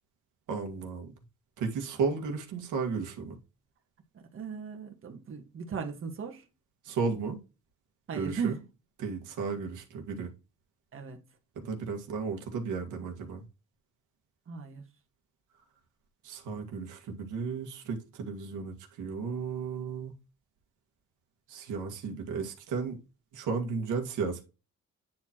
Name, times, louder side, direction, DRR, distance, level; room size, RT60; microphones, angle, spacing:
voice 1, 0.5-1.1 1.6-3.4 6.8-7.4 8.1-8.6 9.0-10.3 11.6-13.4 16.2-20.1 21.5-23.0 23.3-24.4, right 5 dB, 80° right, 1.8 m, -34 dB
voice 2, 4.1-6.4 8.1-8.6 10.9-11.2 14.5-14.8, right 6 dB, 45° right, 1.6 m, -37 dB
9.4 x 4.4 x 3.0 m
cardioid pair, 90°, 30 cm